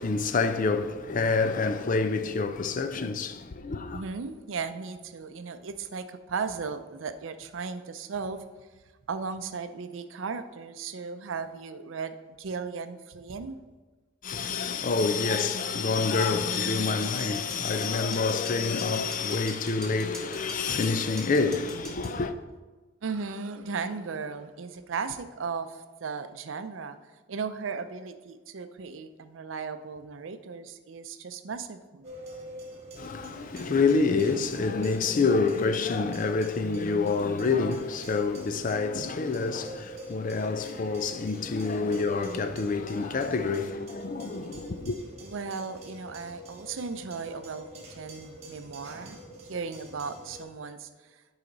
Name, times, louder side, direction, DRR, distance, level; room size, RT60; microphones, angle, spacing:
voice 1, 0.0-4.0 14.2-22.3 33.0-45.0, left 4 dB, 45° left, 0.5 m, -27 dB
voice 2, 3.9-8.4 9.1-13.6 23.0-27.0 27.3-32.1 45.2-49.2 49.4-51.2, right 5 dB, 85° right, 0.5 m, -36 dB
sound 1, 17.0-22.2, right 1 dB, 5° left, 1.3 m, -45 dB
sound 2, 32.0-50.4, equal, 35° right, 1.4 m, -46 dB
9.8 x 4.9 x 3.9 m
head